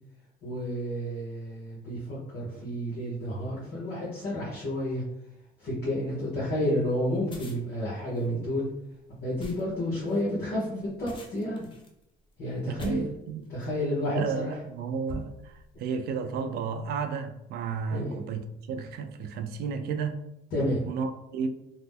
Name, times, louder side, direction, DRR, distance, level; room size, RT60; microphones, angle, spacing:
voice 1, 0.4-5.0 5.6-8.7 9.1-11.7 12.4-13.0 13.5-14.5 17.9-18.2 20.5-20.8, equal, 65° left, -7 dB, 1.1 m, -30 dB
sound 1, 7.2-13.8 14.5-14.7 15.1-15.8, left 1 dB, 30° left, 0.6 m, -45 dB
voice 2, 12.7-13.5 14.1-20.2 20.9-21.5, right 5 dB, 70° right, 8 dB, 0.4 m, -32 dB
2.9 x 2.1 x 3.5 m, 0.85 s
cardioid pair, 110°, 17 cm